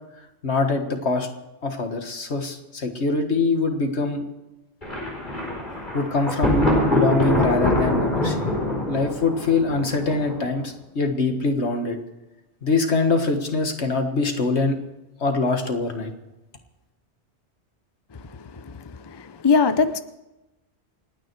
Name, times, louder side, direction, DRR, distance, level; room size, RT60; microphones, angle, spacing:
voice 1, 0.4-1.3 1.6-4.2 5.9-8.4 8.9-12.0 12.6-14.8 15.2-16.1, left 3 dB, 75° left, 5 dB, 1.9 m, -23 dB
Thunder, 4.8-10.6, left 1 dB, 45° left, 4.8 m, -24 dB
voice 2, 18.5-20.0, left 5 dB, 25° left, 11 dB, 0.6 m, -22 dB
28.5 x 9.5 x 4.7 m, 1.0 s
omnidirectional pair, 1.1 m